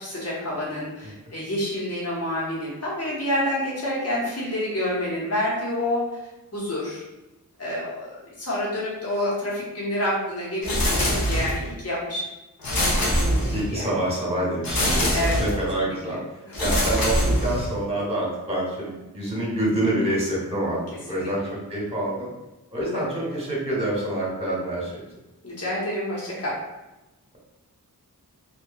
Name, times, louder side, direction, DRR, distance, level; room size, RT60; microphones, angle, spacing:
voice 1, 0.0-6.1 6.5-7.0 7.6-12.2 13.4-13.9 15.1-15.4 15.8-16.2 16.5-16.6 21.1-21.5 22.9-23.3 25.4-26.6, left 1 dB, 40° left, -6 dB, 0.9 m, -28 dB
sound 1, 10.6-11.7 12.6-13.8 14.6-15.7 16.5-17.8, equal, 70° left, 0.7 m, -23 dB
voice 2, 13.5-16.2 16.6-20.8 21.1-22.3 22.7-25.0, right 1 dB, 15° right, -5 dB, 1.0 m, -27 dB
2.8 x 2.2 x 2.3 m, 1.0 s
wide cardioid pair, 60°, 37 cm